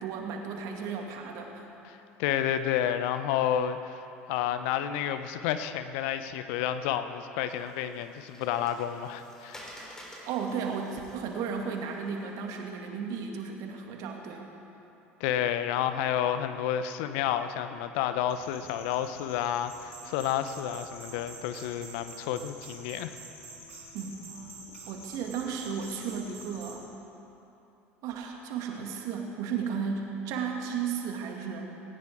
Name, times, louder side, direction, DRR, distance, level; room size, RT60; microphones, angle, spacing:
voice 1, 0.0-1.7 10.2-14.5 23.9-24.2 24.9-26.9 28.0-31.7, right 6 dB, 55° right, 2 dB, 2.3 m, -34 dB
voice 2, 1.8-4.0 4.3-9.7 15.2-23.1, left 10 dB, 60° left, 10 dB, 0.8 m, -30 dB
Water, 7.3-12.7, equal, 10° left, 3.6 m, -51 dB
sound 1, 18.3-26.8, left 2 dB, 80° left, 3.1 m, -51 dB
sound 2, 19.7-26.8, right 5 dB, 80° right, 2.0 m, -49 dB
18.5 x 18.5 x 3.7 m, 2.9 s
figure-of-eight pair, 70°, 7 cm